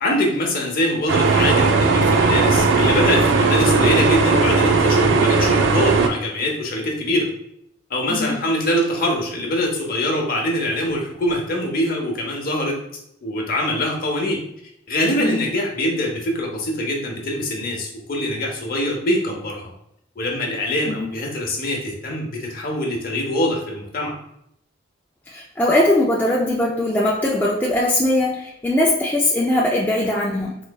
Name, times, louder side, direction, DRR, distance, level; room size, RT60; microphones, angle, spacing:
voice 1, 0.0-7.3 7.9-12.7 13.2-14.4 14.9-19.7 20.2-24.2, left 1 dB, 50° left, 0 dB, 0.9 m, -23 dB
sound 1, 1.1-6.1, right 4 dB, 70° right, 0.4 m, -17 dB
voice 2, 8.1-8.4 15.2-15.5 20.9-21.1 25.3-30.6, left 1 dB, 10° left, -4 dB, 0.4 m, -20 dB
3.9 x 3.1 x 2.2 m, 0.74 s
head